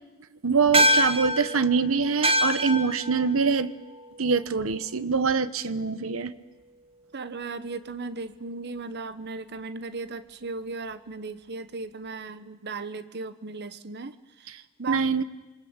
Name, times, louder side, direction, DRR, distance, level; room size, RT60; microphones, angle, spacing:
voice 1, 0.4-3.7 4.2-6.3 14.9-15.2, right 5 dB, 80° right, 14 dB, 1.1 m, -24 dB
sound 1, 0.7-5.4, equal, 30° right, 1.7 m, -26 dB
voice 2, 7.1-15.0, right 3 dB, 55° right, 12 dB, 1.1 m, -36 dB
27.5 x 24.0 x 8.9 m, 1.1 s
head